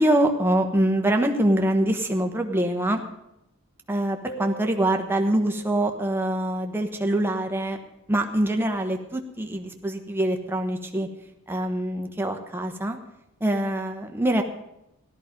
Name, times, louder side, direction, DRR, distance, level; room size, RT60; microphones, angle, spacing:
voice 1, 0.0-3.0 3.9-7.8 8.1-11.1 11.5-13.0 13.4-14.4, right 1 dB, 10° right, 3 dB, 1.2 m, -24 dB
sound 1, 4.3-7.6, right 3 dB, 15° left, 1.3 m, -44 dB
16.0 x 13.0 x 5.3 m, 0.86 s
head